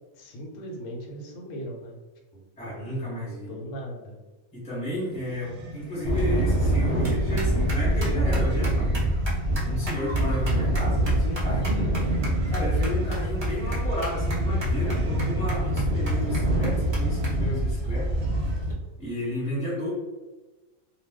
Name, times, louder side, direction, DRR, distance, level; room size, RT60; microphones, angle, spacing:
voice 1, 0.1-2.0 2.3-2.5 3.5-4.2, equal, 65° left, -1 dB, 1.0 m, -38 dB
voice 2, 2.6-3.5 4.5-8.9 9.6-12.0 12.5-18.1 19.0-19.9, equal, 5° left, -7 dB, 0.8 m, -32 dB
sound 1, 5.1-18.8, left 1 dB, 70° right, 0.9 m, -38 dB
sound 2, 6.0-18.7, right 1 dB, 45° right, 0.3 m, -25 dB
2.3 x 2.2 x 3.4 m, 1.2 s
omnidirectional pair, 1.5 m